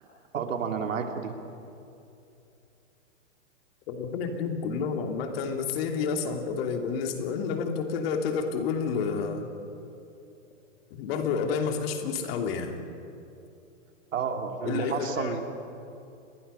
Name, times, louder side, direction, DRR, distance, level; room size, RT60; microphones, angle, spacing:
voice 1, 0.3-1.3 14.1-15.4, right 6 dB, 85° right, 4 dB, 2.9 m, -30 dB
voice 2, 3.9-9.5 10.9-12.8 14.6-15.4, left 5 dB, 50° left, 4 dB, 2.9 m, -30 dB
29.5 x 21.5 x 5.6 m, 2.7 s
hypercardioid pair, 135°, 38 cm